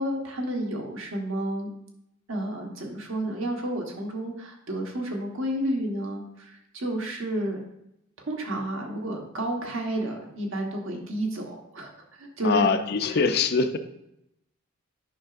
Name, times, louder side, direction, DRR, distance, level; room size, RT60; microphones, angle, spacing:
voice 1, 0.0-1.7 2.3-7.6 8.3-11.9 12.2-12.7 13.0-13.2, right 1 dB, 65° right, 1 dB, 1.2 m, -30 dB
voice 2, 12.4-13.8, left 4 dB, 50° left, 9 dB, 0.5 m, -23 dB
9.0 x 5.8 x 2.5 m, 0.81 s
head